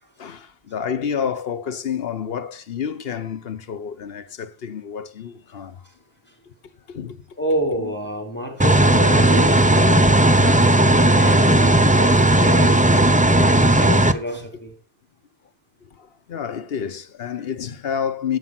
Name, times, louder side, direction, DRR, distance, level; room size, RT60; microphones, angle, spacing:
voice 1, 0.2-5.8 6.9-7.2 7.8-7.9 9.7-10.1 10.4-10.9 12.4-12.6 16.0-18.4, left 7 dB, 65° left, 1.1 m, -29 dB
voice 2, 7.4-10.2 10.7-14.7, equal, 10° left, 3.1 m, -29 dB
sound 1, 8.6-14.1, right 1 dB, 10° right, 0.6 m, -15 dB
11.5 x 7.3 x 6.0 m
omnidirectional pair, 1.1 m